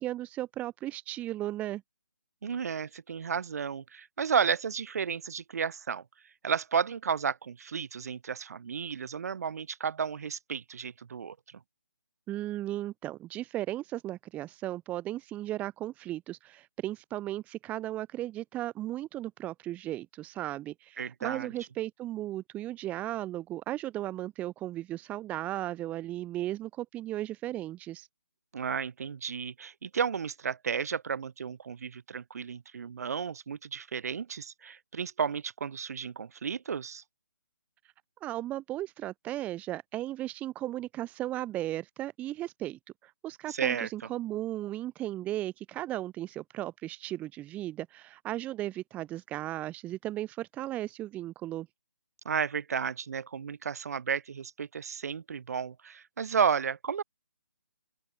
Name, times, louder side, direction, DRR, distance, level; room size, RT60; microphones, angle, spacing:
voice 1, 0.0-1.8 12.3-28.1 38.2-51.7, right 14 dB, 15° right, 3.1 m, -36 dB
voice 2, 2.4-6.0 6.4-11.4 21.0-21.5 28.5-37.0 43.5-43.9 52.2-57.0, right 6 dB, 50° right, 6.2 m, -32 dB
open air
figure-of-eight pair, 155°, 10 cm